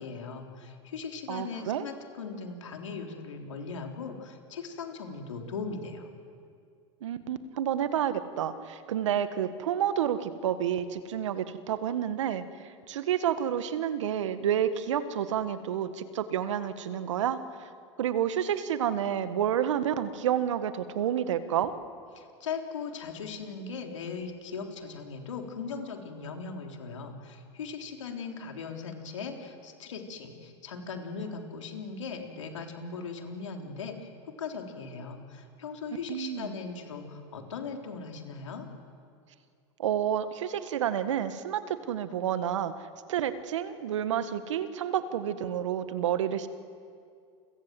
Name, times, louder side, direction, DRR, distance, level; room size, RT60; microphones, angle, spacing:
voice 1, 0.0-6.1 22.2-34.1 34.4-38.7, left 5 dB, 85° left, 3 dB, 3.7 m, -39 dB
voice 2, 1.3-1.9 7.0-12.4 12.9-17.4 18.0-21.7 36.1-36.5 39.8-42.7 43.1-46.5, right 9 dB, 75° right, 11 dB, 1.7 m, -29 dB
30.0 x 24.5 x 7.8 m, 2.3 s
hypercardioid pair, 95°, 16 cm